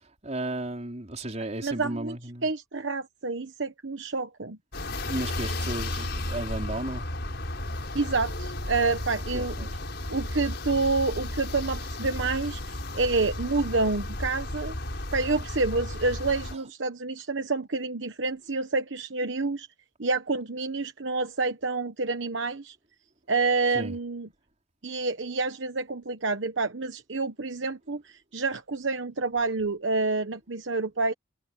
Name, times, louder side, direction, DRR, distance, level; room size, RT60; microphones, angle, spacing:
voice 1, 0.2-2.5 5.0-7.0 9.3-9.8 16.0-16.1 16.5-16.7 23.7-24.0, right 1 dB, 35° right, 4.7 m, -34 dB
voice 2, 1.6-2.2 2.4-4.6 7.9-9.6 10.1-14.7 15.1-19.7 20.0-22.8 23.3-24.3 24.8-31.1, right 3 dB, 65° right, 1.2 m, -28 dB
sound 1, 4.7-16.5, left 1 dB, 60° left, 6.2 m, -34 dB
head